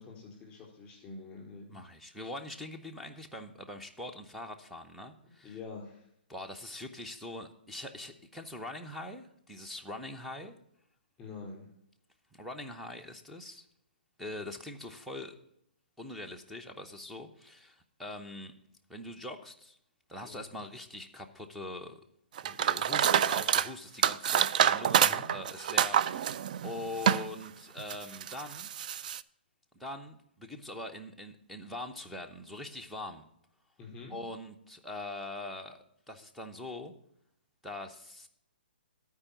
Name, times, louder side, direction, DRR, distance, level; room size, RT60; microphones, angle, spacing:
voice 1, 0.0-1.8 5.4-6.0 11.2-11.6 20.2-20.5 24.9-25.3 33.8-34.2, left 4 dB, 15° left, -2 dB, 4.3 m, -46 dB
voice 2, 1.7-5.6 6.3-10.6 12.3-13.6 14.2-15.4 16.0-18.5 18.9-19.8 20.1-22.0 22.4-28.7 29.7-33.2 34.1-36.9 37.6-38.3, left 1 dB, ahead, 3 dB, 0.8 m, -43 dB
sound 1, 22.4-23.7 24.0-27.3 27.8-29.2, right 9 dB, 50° right, 0.3 m, -27 dB
12.5 x 4.7 x 7.1 m, 0.73 s
hypercardioid pair, 140°, 6 cm